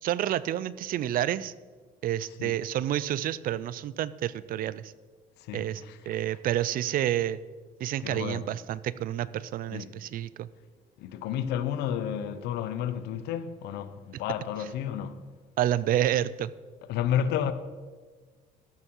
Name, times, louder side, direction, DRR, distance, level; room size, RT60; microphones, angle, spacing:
voice 1, 0.0-1.5 2.0-4.9 5.5-7.4 7.8-10.5 15.6-16.5, right 12 dB, 60° right, 0.4 m, -29 dB
voice 2, 5.4-6.2 8.0-8.5 9.7-10.0 11.0-15.2 16.9-17.5, left 9 dB, 85° left, 0.7 m, -31 dB
13.5 x 7.3 x 4.5 m
cardioid pair, 110°, 17 cm